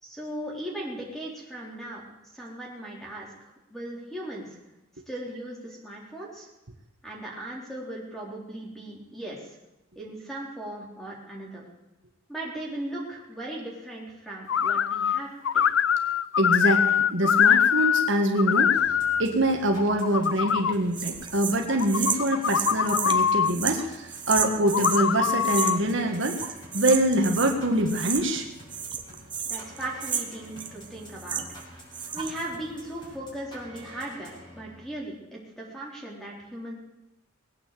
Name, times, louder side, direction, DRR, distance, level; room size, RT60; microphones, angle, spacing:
voice 1, 0.0-4.6 5.1-6.5 7.0-9.6 10.0-11.7 12.3-15.3 15.5-15.6 29.5-31.4 32.1-36.7, right 1 dB, ahead, -3 dB, 3.9 m, -38 dB
sound 1, 14.5-15.2 15.5-18.1 18.4-19.2 19.8-20.7 21.7-23.5 24.6-25.8, left 8 dB, 65° left, 0.4 m, -23 dB
voice 2, 16.4-18.9 19.2-26.4 26.7-28.4, right 1 dB, 60° right, 2 dB, 1.8 m, -25 dB
sound 2, 18.8-35.1, equal, 20° left, 5.9 m, -48 dB
sound 3, 20.9-25.0 25.4-25.9 26.2-27.6 27.9-28.4 28.7-31.6 31.9-32.5, right 7 dB, 20° right, 1.1 m, -32 dB
20.5 x 9.0 x 7.7 m, 0.95 s
head